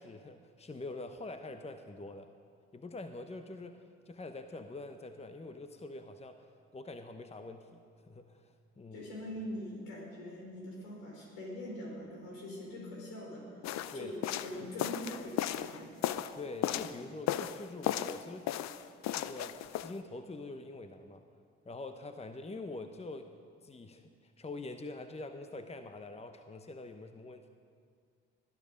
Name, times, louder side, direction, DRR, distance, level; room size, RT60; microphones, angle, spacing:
voice 1, 0.0-2.3 2.7-6.5 6.7-9.0 13.9-14.1 16.3-18.6 19.0-21.2 21.6-23.3 23.6-27.5, left 2 dB, 20° left, 8 dB, 1.0 m, -45 dB
voice 2, 8.9-13.5 13.9-15.9, left 1 dB, 75° left, -2 dB, 4.4 m, -43 dB
sound 1, 13.6-17.0 17.3-18.2 18.5-19.9, left 12 dB, 60° left, 0.7 m, -35 dB
20.5 x 11.5 x 5.3 m, 2.1 s
hypercardioid pair, 45°, 31 cm